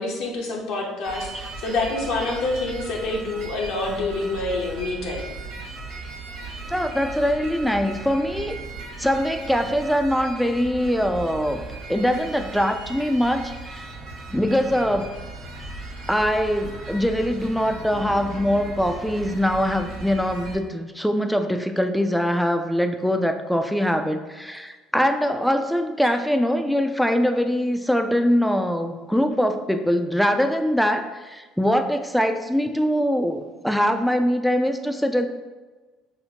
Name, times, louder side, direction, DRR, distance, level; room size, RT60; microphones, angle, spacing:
voice 1, 0.0-5.3, left 2 dB, 75° left, -2 dB, 0.7 m, -27 dB
sound 1, 1.0-20.6, right 3 dB, 80° right, 0.9 m, -37 dB
voice 2, 6.7-8.6 9.0-11.6 11.9-13.8 14.3-15.1 16.1-35.3, equal, ahead, 6 dB, 0.3 m, -23 dB
5.7 x 2.1 x 2.8 m, 1.3 s
supercardioid pair, 95°, 0 cm